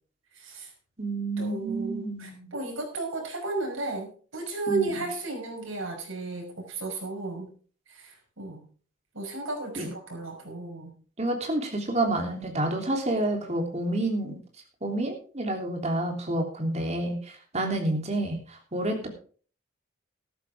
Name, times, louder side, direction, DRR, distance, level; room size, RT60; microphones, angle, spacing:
voice 1, 0.3-0.7 1.4-7.5 7.9-8.6 9.1-10.9, right 3 dB, 80° right, 2 dB, 5.6 m, -34 dB
voice 2, 1.0-2.5 4.7-5.1 9.7-9.9 11.2-14.3 14.8-17.2 17.5-19.1, right 1 dB, 35° right, 3 dB, 3.2 m, -29 dB
13.5 x 12.5 x 3.6 m, 0.41 s
head